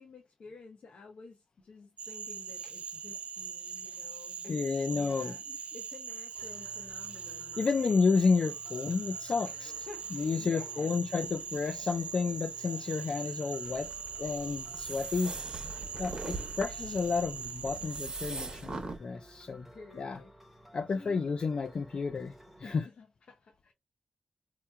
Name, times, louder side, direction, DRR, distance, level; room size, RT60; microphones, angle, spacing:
voice 1, 0.0-4.6 4.9-5.4 5.7-8.0 9.4-11.0 19.7-20.3 20.9-21.4 22.6-23.7, left 4 dB, 75° left, 0.7 m, -51 dB
Cricket / Frog, 2.0-18.1, right 6 dB, 75° right, 0.4 m, -41 dB
voice 2, 4.4-5.3 7.6-9.7 10.1-13.9 14.2-15.3 16.0-19.7 20.0-20.2 20.7-22.3 22.6-22.9, left 4 dB, 50° left, 0.3 m, -31 dB
sound 1, 6.4-22.8, equal, 5° right, 0.6 m, -56 dB
sound 2, 13.6-19.0, right 3 dB, 40° right, 0.8 m, -41 dB
4.5 x 2.9 x 2.2 m
wide cardioid pair, 165°, 2 cm